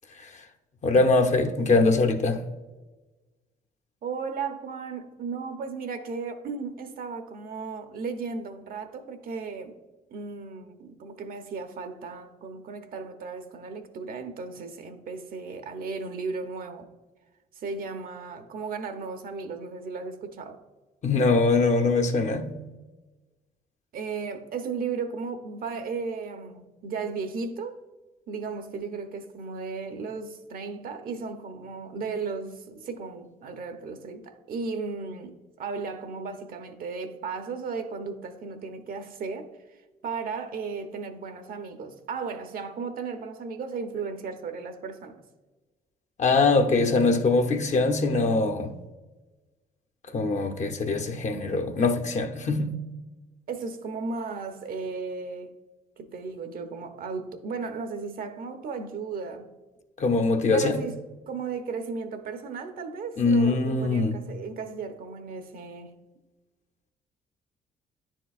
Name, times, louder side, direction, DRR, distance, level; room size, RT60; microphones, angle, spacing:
voice 1, 0.8-2.4 21.0-22.6 46.2-48.7 50.1-52.7 60.0-60.8 63.2-64.2, left 3 dB, 45° left, 0.8 m, -22 dB
voice 2, 4.0-9.7 10.1-16.9 17.6-20.6 23.9-27.8 28.3-39.5 40.0-45.2 53.5-55.5 56.0-59.5 60.5-65.9, right 4 dB, 60° right, 0.8 m, -35 dB
9.9 x 4.5 x 2.4 m
supercardioid pair, 70°, 17 cm